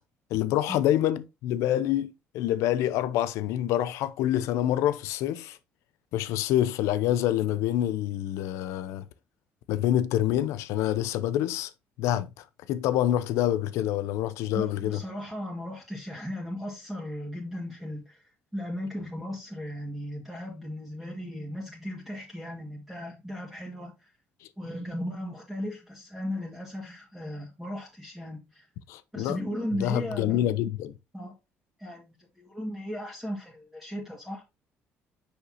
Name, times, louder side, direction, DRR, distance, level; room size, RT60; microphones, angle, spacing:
voice 1, 0.3-5.6 6.1-9.1 9.7-11.7 12.0-15.0 28.9-29.4 29.7-30.9, left 12 dB, 85° left, 0.6 m, -27 dB
voice 2, 14.5-18.2 18.5-24.1 24.6-28.7 29.1-30.6 31.1-31.3 31.8-34.4, equal, 5° right, 1.8 m, -36 dB
5.9 x 5.7 x 2.8 m
cardioid pair, 110°, 5 cm